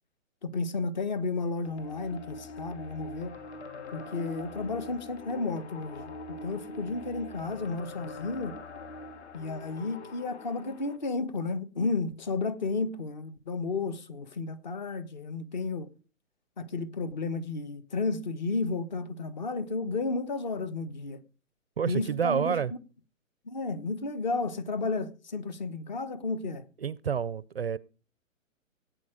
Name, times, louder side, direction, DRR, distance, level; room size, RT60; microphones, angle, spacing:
voice 1, 0.4-3.3 3.9-6.1 6.4-8.6 9.3-15.9 16.6-21.2 21.8-22.6 23.4-26.6, left 3 dB, 35° left, 1.3 m, -32 dB
sound 1, 1.6-11.0, left 2 dB, 55° left, 2.7 m, -43 dB
voice 2, 21.8-22.7 26.8-27.8, right 7 dB, 45° right, 0.6 m, -29 dB
17.5 x 9.1 x 5.0 m
hypercardioid pair, 180°, 40 cm